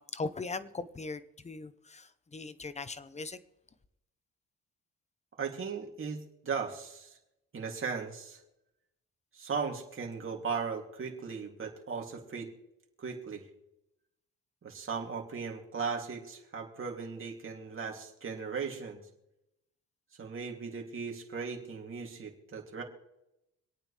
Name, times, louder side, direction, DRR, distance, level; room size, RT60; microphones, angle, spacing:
voice 1, 0.0-3.4, left 3 dB, 20° left, 0.9 m, -39 dB
voice 2, 5.4-7.2 7.5-8.4 9.3-12.5 13.0-13.5 14.6-19.0 20.2-22.8, right 5 dB, 45° right, 2.9 m, -37 dB
26.0 x 9.0 x 3.4 m
cardioid pair, 90°, 30 cm